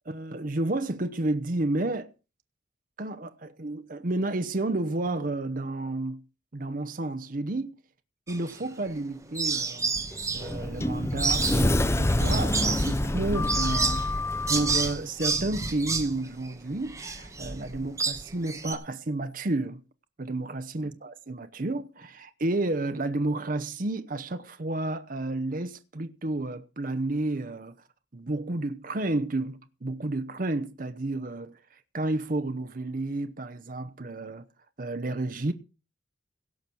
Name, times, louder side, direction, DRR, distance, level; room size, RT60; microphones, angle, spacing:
voice 1, 0.1-2.1 3.0-6.2 6.5-7.8 8.3-10.0 10.3-14.1 14.5-19.8 20.2-27.8 28.1-34.4 34.8-35.5, right 2 dB, 50° right, 0.8 m, -31 dB
sound 1, 8.3-9.0 9.3-18.7, right 4 dB, 15° right, 2.1 m, -30 dB
Sliding door, 10.1-14.9, left 1 dB, 15° left, 0.6 m, -27 dB
17.0 x 6.1 x 6.9 m
head